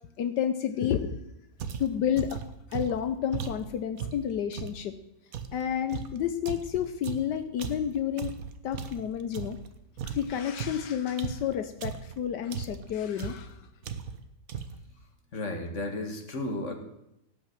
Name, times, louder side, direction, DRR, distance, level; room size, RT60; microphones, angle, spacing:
voice 1, 0.2-1.2 1.8-2.4 2.7-4.9 5.5-8.3 8.6-9.6 10.1-13.6, left 9 dB, 75° left, 9 dB, 1.4 m, -30 dB
sound 1, 1.6-4.8 5.3-9.7 10.0-12.2 12.5-12.9 13.2-13.5 13.8-14.2 14.5-14.9, right 7 dB, 60° right, 1.3 m, -37 dB
voice 2, 15.3-16.7, left 1 dB, 45° left, 5 dB, 2.0 m, -33 dB
17.0 x 5.9 x 7.7 m, 0.85 s
omnidirectional pair, 1.9 m